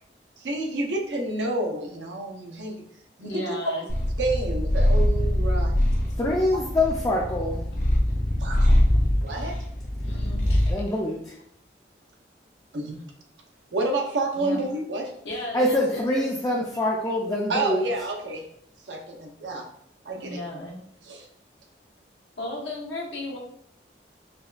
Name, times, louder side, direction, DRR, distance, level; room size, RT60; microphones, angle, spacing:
voice 1, 0.4-2.8 3.2-3.4 4.2-5.7 8.4-8.8 9.2-9.6 12.7-13.0 13.7-15.1 17.5-18.4 18.9-19.7 20.0-20.4, right 2 dB, 85° right, 1 dB, 0.7 m, -29 dB
voice 2, 3.2-3.9 10.0-10.7 14.3-14.6 15.2-16.3 20.1-20.7 22.4-23.4, left 1 dB, 90° left, -4 dB, 1.1 m, -35 dB
Purr, 3.9-10.8, left 1 dB, 50° left, 0.7 m, -23 dB
voice 3, 6.2-7.6 10.7-11.4 15.5-17.9, left 1 dB, 20° left, -2 dB, 0.3 m, -25 dB
5.0 x 2.3 x 2.4 m, 0.71 s
head